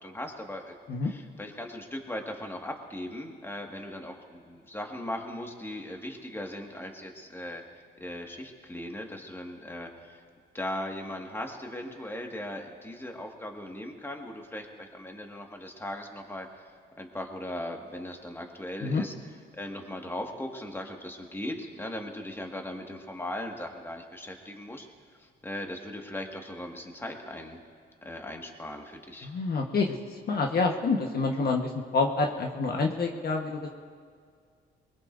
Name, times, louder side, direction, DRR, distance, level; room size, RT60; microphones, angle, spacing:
voice 1, 0.0-7.6 8.0-10.2 10.5-19.1 19.5-24.9 25.2-27.6 28.0-29.3, left 1 dB, 10° left, 2 dB, 1.9 m, -38 dB
voice 2, 29.2-33.7, left 4 dB, 50° left, 1 dB, 1.3 m, -28 dB
23.0 x 21.0 x 2.7 m, 2.1 s
cardioid pair, 90°, 20 cm